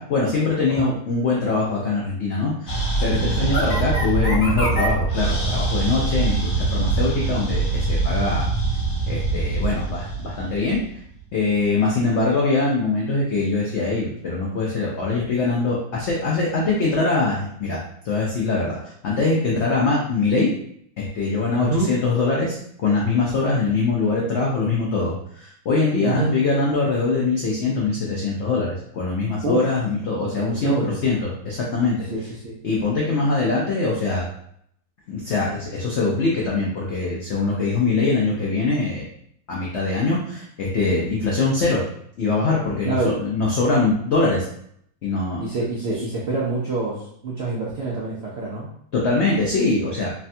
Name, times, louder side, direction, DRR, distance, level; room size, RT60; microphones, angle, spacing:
voice 1, 0.0-8.5 9.1-11.0 11.3-20.5 21.0-32.1 32.6-34.3 35.1-39.0 39.5-41.8 42.2-44.5 45.0-45.4 48.9-50.1, left 3 dB, 85° left, -4 dB, 0.6 m, -23 dB
sound 1, 2.7-11.2, right 3 dB, 50° left, 0.9 m, -23 dB
voice 2, 30.5-31.0 32.1-32.6 42.8-43.1 45.4-48.7, right 3 dB, 75° right, -5 dB, 0.6 m, -26 dB
3.3 x 2.2 x 2.6 m, 0.68 s
omnidirectional pair, 1.8 m